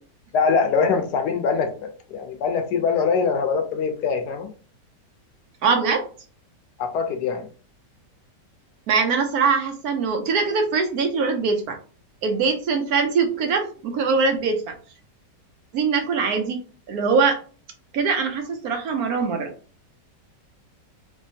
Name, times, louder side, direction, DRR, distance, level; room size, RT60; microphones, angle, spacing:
voice 1, 0.3-4.5 6.8-7.5, left 5 dB, 75° left, 6 dB, 1.2 m, -23 dB
voice 2, 5.6-6.1 8.9-11.8 12.2-14.7 15.7-16.6 16.9-17.4 17.9-19.5, right 5 dB, 70° right, 5 dB, 1.0 m, -22 dB
3.4 x 3.0 x 2.7 m, 0.39 s
omnidirectional pair, 1.9 m